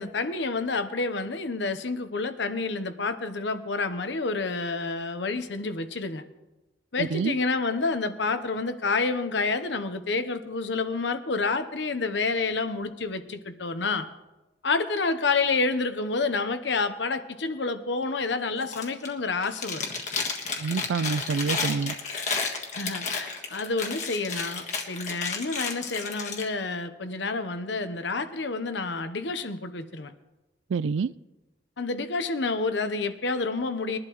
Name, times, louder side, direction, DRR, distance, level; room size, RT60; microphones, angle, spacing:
voice 1, 0.0-6.2 6.9-14.1 14.6-19.9 22.7-30.1 31.8-34.0, left 3 dB, 75° left, 0.9 m, -29 dB
voice 2, 7.0-7.4 20.6-22.0 30.7-31.1, right 5 dB, 90° right, 0.4 m, -27 dB
Chewing mastication, 18.6-19.1 19.4-26.4, left 4 dB, 40° left, 1.5 m, -32 dB
21.5 x 11.5 x 3.1 m
head